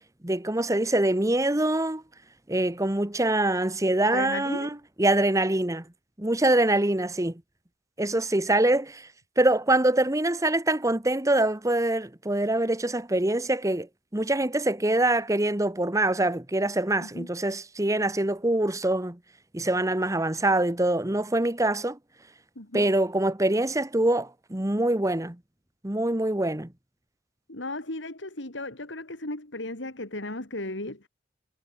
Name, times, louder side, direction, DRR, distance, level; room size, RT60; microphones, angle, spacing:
voice 1, 0.2-2.0 2.5-5.8 6.2-7.4 8.0-9.1 9.4-13.9 14.1-19.2 19.5-22.0 22.7-25.4 25.8-26.7, right 1 dB, 15° right, 1.2 m, -24 dB
voice 2, 4.1-4.7 17.0-17.3 22.5-22.9 27.5-31.1, left 2 dB, 70° left, 3.4 m, -35 dB
head